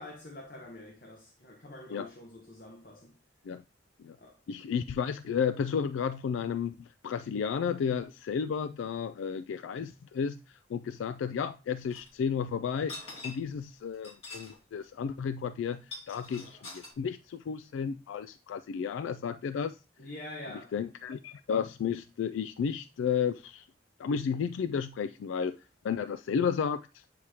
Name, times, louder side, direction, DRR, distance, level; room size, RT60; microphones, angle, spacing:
voice 1, 0.0-3.2 4.2-4.4 20.0-20.7, left 1 dB, 50° left, 1.0 m, -46 dB
voice 2, 4.5-12.9 13.2-19.8 20.7-23.7 24.0-27.0, left 6 dB, 80° left, 0.3 m, -32 dB
sound 1, 11.9-12.1 12.8-13.6 13.9-14.6 14.8-14.9 15.7-16.9, left 3 dB, 35° left, 2.6 m, -44 dB
8.4 x 2.9 x 4.8 m
head